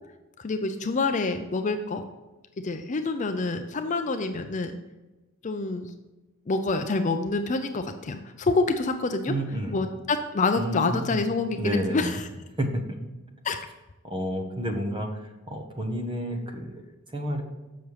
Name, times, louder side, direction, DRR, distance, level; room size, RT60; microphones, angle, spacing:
voice 1, 0.4-2.0 2.6-4.8 5.4-5.9 6.5-9.3 9.7-12.2 13.4-13.6, left 3 dB, 35° left, 7 dB, 0.4 m, -27 dB
voice 2, 9.3-9.8 10.6-11.2 11.6-12.2 12.6-13.0 14.0-17.4, right 1 dB, 20° right, 3 dB, 1.0 m, -30 dB
7.0 x 6.1 x 4.8 m, 1.1 s
head